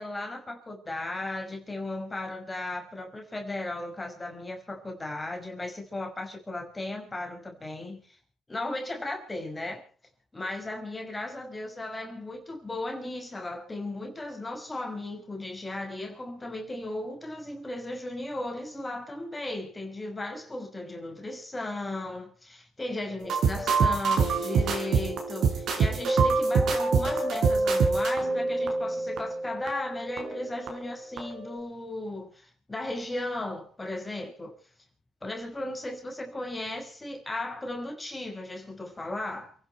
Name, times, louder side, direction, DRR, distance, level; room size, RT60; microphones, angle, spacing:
voice 1, 0.0-8.2 8.5-9.8 10.3-34.6 35.2-39.5, left 2 dB, 20° left, 5.1 m, -36 dB
sound 1, 23.2-30.9 31.2-31.5, right 4 dB, 70° right, 6.4 m, -26 dB
28.5 x 11.0 x 4.5 m
cardioid pair, 90°, 0 cm